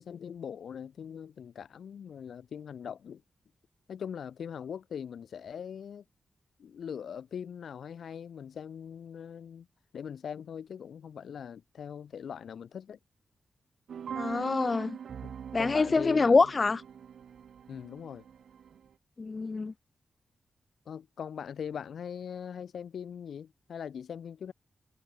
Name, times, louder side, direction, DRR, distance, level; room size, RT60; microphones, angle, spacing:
voice 1, 0.0-3.2 3.9-6.0 6.6-9.7 9.9-13.0 15.2-16.5 17.7-18.2 20.8-24.5, left 7 dB, 85° left, 3.2 m, -41 dB
sound 1, 13.9-18.9, right 8 dB, 85° right, 2.6 m, -43 dB
voice 2, 14.1-15.0 15.5-16.8 19.2-19.7, left 4 dB, 35° left, 0.4 m, -25 dB
wide cardioid pair, 110°, 0 cm